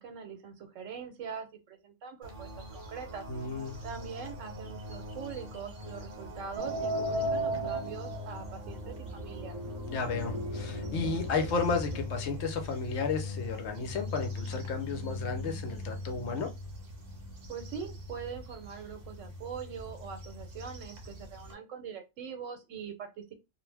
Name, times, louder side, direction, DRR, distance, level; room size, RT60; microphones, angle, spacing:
voice 1, 0.0-3.2 3.8-9.6 17.5-23.3, right 6 dB, 90° right, 7 dB, 1.1 m, -43 dB
sound 1, 2.2-21.5, left 3 dB, 55° right, 0.9 m, -42 dB
voice 2, 3.3-3.8 9.9-16.5, left 4 dB, 65° left, 5 dB, 0.8 m, -33 dB
sound 2, 6.6-12.1, right 1 dB, 35° right, 0.5 m, -36 dB
2.4 x 2.1 x 3.2 m, 0.24 s
omnidirectional pair, 1.3 m